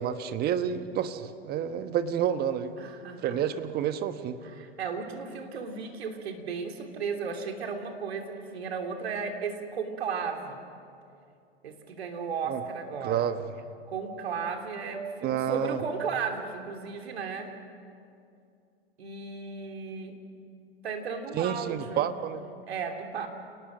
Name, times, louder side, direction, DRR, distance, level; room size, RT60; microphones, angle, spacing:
voice 1, 0.0-2.7 3.2-4.4 12.5-12.6 13.0-13.4 15.2-15.8 21.3-22.4, right 9 dB, 30° right, 10 dB, 1.3 m, -29 dB
voice 2, 2.8-3.4 4.5-10.6 11.6-13.3 13.9-17.5 19.0-20.2 20.8-22.1 22.7-23.3, right 5 dB, 75° right, 4 dB, 3.1 m, -35 dB
29.5 x 19.0 x 6.3 m, 2.5 s
hypercardioid pair, 115°, 31 cm